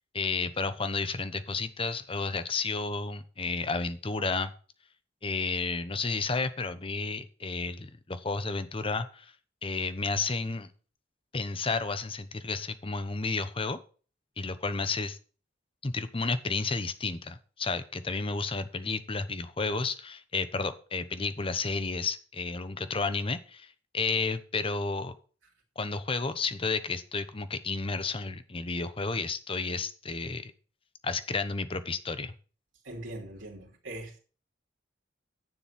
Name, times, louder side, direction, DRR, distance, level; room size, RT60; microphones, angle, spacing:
voice 1, 0.1-4.5 5.2-9.3 9.6-10.7 11.3-13.8 14.4-15.2 15.8-25.1 25.8-30.5 31.0-32.3, left 4 dB, 30° left, 0.9 m, -32 dB
voice 2, 32.8-34.2, right 1 dB, 90° right, 3.0 m, -41 dB
10.5 x 7.0 x 5.8 m
head